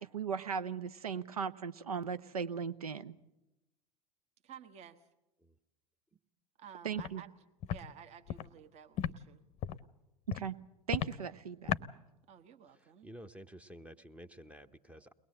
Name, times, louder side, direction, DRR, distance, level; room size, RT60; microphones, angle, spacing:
voice 1, 0.0-3.2 6.8-7.2 10.3-10.6 10.9-11.7, right 6 dB, 75° right, 16 dB, 0.8 m, -37 dB
voice 2, 4.4-5.1 6.6-7.3 7.7-9.4 12.3-13.1, right 8 dB, 35° right, 8 dB, 1.1 m, -53 dB
Walk footsteps, 7.0-7.1 7.6-7.8 8.3-8.4 9.0-9.1 9.6-9.8 10.3-10.5 10.9-11.1 11.7-11.8, left 10 dB, 35° left, 0.7 m, -34 dB
voice 3, 13.0-15.1, equal, 5° right, 12 dB, 0.8 m, -51 dB
22.5 x 20.0 x 7.6 m, 0.96 s
figure-of-eight pair, 85°, 19 cm